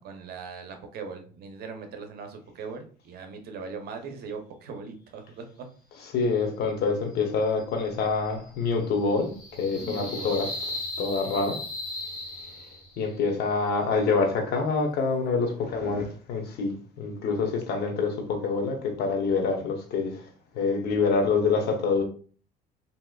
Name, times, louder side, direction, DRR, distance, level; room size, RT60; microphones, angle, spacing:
voice 1, 0.0-5.7 9.8-10.4, right 5 dB, 65° right, 0.7 m, -40 dB
voice 2, 6.1-9.3 9.6-10.5 11.0-11.6 13.0-20.2 20.5-22.0, left 4 dB, 75° left, 0.9 m, -26 dB
sound 1, 7.1-13.1, left 1 dB, 25° left, 1.2 m, -38 dB
3.4 x 2.8 x 2.3 m
cardioid pair, 110°, 17 cm